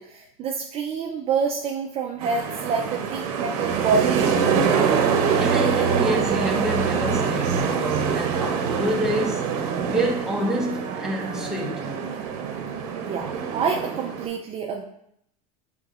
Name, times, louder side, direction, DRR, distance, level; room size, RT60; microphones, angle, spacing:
voice 1, 0.0-4.6 13.0-14.8, right 5 dB, 30° right, 1 dB, 0.4 m, -27 dB
sound 1, 2.2-14.3, right 6 dB, 70° right, 0.8 m, -24 dB
voice 2, 5.4-11.9, equal, 5° right, -2 dB, 0.9 m, -28 dB
5.9 x 3.6 x 2.5 m, 0.75 s
supercardioid pair, 120°, 19 cm